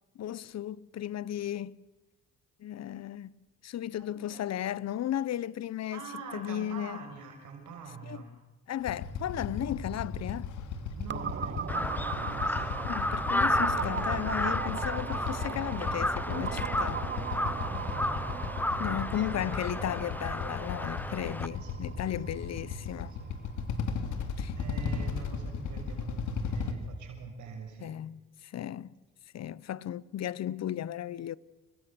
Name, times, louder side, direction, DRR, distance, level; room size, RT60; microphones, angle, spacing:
voice 1, 0.1-1.8 2.6-6.0 6.3-7.1 8.1-8.2 8.7-10.6 12.9-17.0 18.8-23.2 24.4-24.6 27.8-28.9 29.3-31.3, left 11 dB, 60° left, 0.9 m, -35 dB
voice 2, 4.0-4.4 5.9-8.3 10.9-12.8 17.7-19.4 21.4-21.9 22.3-23.3 24.5-27.9, right 5 dB, 75° right, 6.5 m, -45 dB
Motorcycle / Idling, 8.8-26.7, left 5 dB, 80° left, 3.4 m, -36 dB
sound 1, 11.1-24.7, right 8 dB, 40° right, 0.8 m, -39 dB
Crow, 11.7-21.5, left 1 dB, 5° left, 0.9 m, -33 dB
30.0 x 23.5 x 7.8 m
cardioid pair, 90°, 30 cm